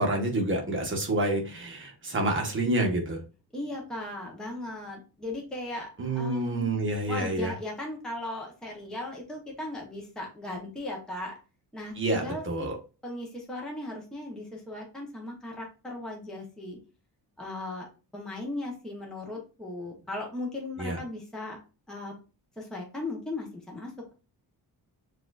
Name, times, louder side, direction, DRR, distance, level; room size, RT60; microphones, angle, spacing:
voice 1, 0.0-3.2 6.0-7.5 12.0-12.8 20.8-21.0, right 2 dB, 30° right, 1 dB, 1.1 m, -28 dB
voice 2, 3.5-5.9 6.1-6.7 7.1-11.4 11.7-12.7 13.0-16.8 17.4-17.9 18.1-21.6 21.9-22.1 22.6-23.9, left 2 dB, ahead, -1 dB, 0.8 m, -37 dB
6.7 x 2.6 x 2.3 m, 0.33 s
wide cardioid pair, 170°, 41 cm